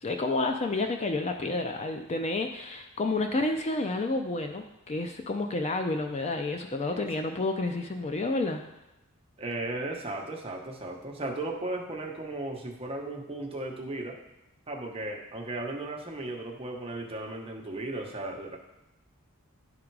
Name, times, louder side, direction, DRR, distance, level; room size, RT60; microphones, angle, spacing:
voice 1, 0.0-8.6, left 2 dB, 30° left, 5 dB, 0.4 m, -30 dB
voice 2, 9.4-14.2 14.7-18.6, right 2 dB, 25° right, 0 dB, 1.0 m, -36 dB
10.5 x 3.7 x 4.7 m, 0.93 s
head